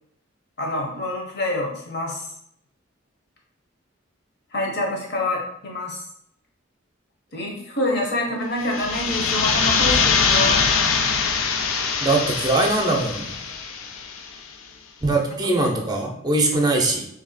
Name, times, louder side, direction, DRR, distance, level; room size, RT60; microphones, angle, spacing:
voice 1, 0.6-2.3 4.5-6.0 7.3-10.6, left 1 dB, 55° left, -1 dB, 1.0 m, -26 dB
sound 1, 8.6-14.3, left 5 dB, 90° left, 0.4 m, -22 dB
voice 2, 12.0-13.4 15.0-17.0, right 2 dB, 20° right, 2 dB, 0.5 m, -21 dB
3.0 x 2.7 x 4.0 m, 0.72 s
head